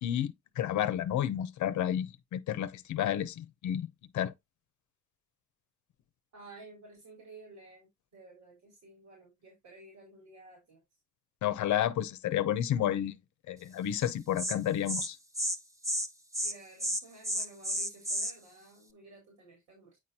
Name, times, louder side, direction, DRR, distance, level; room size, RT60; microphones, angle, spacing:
voice 1, 0.0-4.3 11.4-13.2 13.5-15.2, left 11 dB, 70° left, 0.7 m, -31 dB
voice 2, 6.3-10.8 16.4-20.0, right 2 dB, 85° right, 4.1 m, -53 dB
Insect, 14.0-14.1 14.4-14.5 14.9-15.1 15.3-15.6 15.8-16.1 16.3-16.5 16.8-18.3, equal, 10° right, 1.0 m, -32 dB
9.2 x 4.4 x 2.7 m
cardioid pair, 90°, 30 cm